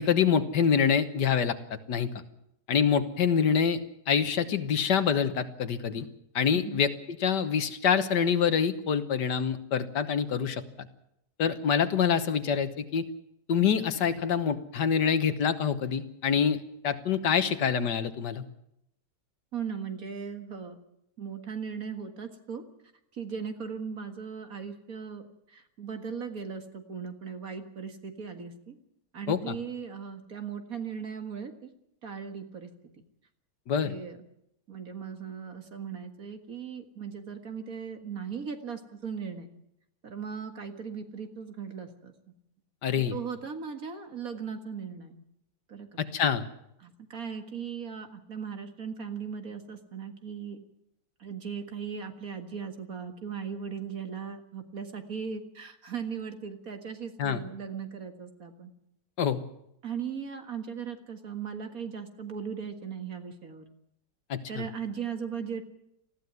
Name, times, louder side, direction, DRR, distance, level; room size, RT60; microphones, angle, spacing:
voice 1, 0.0-1.6 1.9-2.1 2.7-3.8 4.1-6.1 6.4-10.6 11.4-13.1 13.5-16.6 16.8-18.4 29.3-29.6 33.7-34.0 42.8-43.2 46.0-46.5 57.2-57.4 59.2-59.4 64.3-64.7, left 7 dB, 70° left, 10 dB, 1.8 m, -26 dB
voice 2, 19.5-20.8 21.2-22.6 23.1-25.2 25.5-28.8 29.1-31.7 32.0-32.7 33.8-34.2 34.7-39.5 40.0-42.1 42.9-45.2 45.7-45.9 46.8-50.6 51.2-58.7 59.8-63.6 64.5-65.6, right 6 dB, 50° right, 6 dB, 2.2 m, -38 dB
20.0 x 15.0 x 9.5 m, 0.78 s
omnidirectional pair, 1.9 m